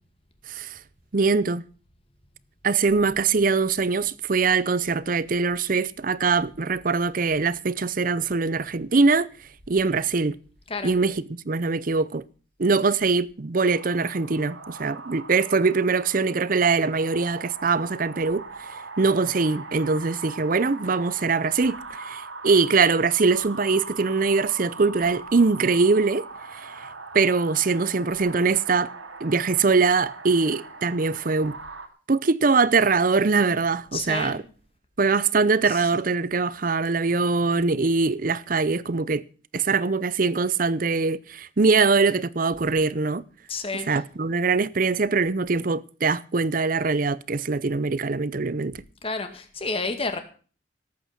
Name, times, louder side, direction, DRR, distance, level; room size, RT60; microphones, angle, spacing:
voice 1, 0.5-0.8 1.1-1.6 2.6-9.3 9.7-10.4 10.8-11.1 11.5-12.2 12.6-26.3 26.6-26.7 27.1-28.9 29.2-31.6 32.1-34.4 35.0-39.2 39.5-43.2 43.9-48.8, right 4 dB, 45° right, 0.6 m, -22 dB
voice 2, 10.7-11.0 33.9-34.5 35.6-35.9 43.5-44.0 49.0-50.2, left 3 dB, 30° left, 1.9 m, -31 dB
sound 1, 13.6-31.9, right 4 dB, 80° right, 2.4 m, -41 dB
18.5 x 8.5 x 5.9 m
head